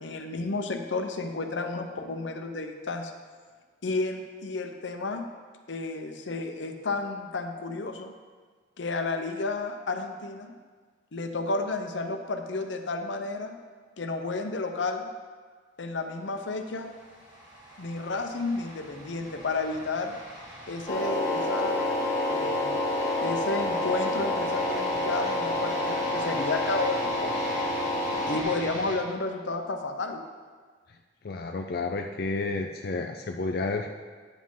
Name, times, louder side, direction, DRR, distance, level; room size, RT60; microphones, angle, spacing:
voice 1, 0.0-3.1 3.8-5.3 5.7-8.1 8.8-10.6 11.1-13.6 14.0-15.1 15.8-16.9 17.8-20.2 20.7-21.8 22.3-22.8 23.2-27.4 28.3-30.2, left 3 dB, 80° left, 5 dB, 0.8 m, -32 dB
sound 1, 16.4-29.0, equal, 25° right, 1.9 m, -41 dB
sound 2, 20.9-28.4, left 1 dB, 20° left, 1.6 m, -28 dB
voice 2, 31.2-33.9, left 3 dB, 55° left, 3 dB, 0.4 m, -31 dB
9.9 x 7.4 x 3.8 m, 1.5 s
head